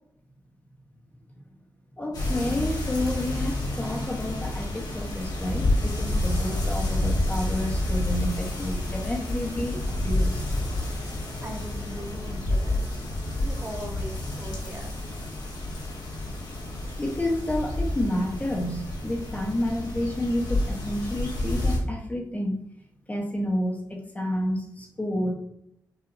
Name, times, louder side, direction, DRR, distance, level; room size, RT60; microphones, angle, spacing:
voice 1, 1.9-10.5 17.0-22.6 23.1-25.3, left 1 dB, 20° left, 1 dB, 1.1 m, -30 dB
sound 1, 2.1-21.8, left 1 dB, 65° left, 1.4 m, -29 dB
voice 2, 11.0-12.9 13.4-14.9, right 1 dB, 30° right, 1 dB, 0.9 m, -40 dB
5.8 x 2.7 x 2.7 m, 0.73 s
cardioid pair, 65°, 7 cm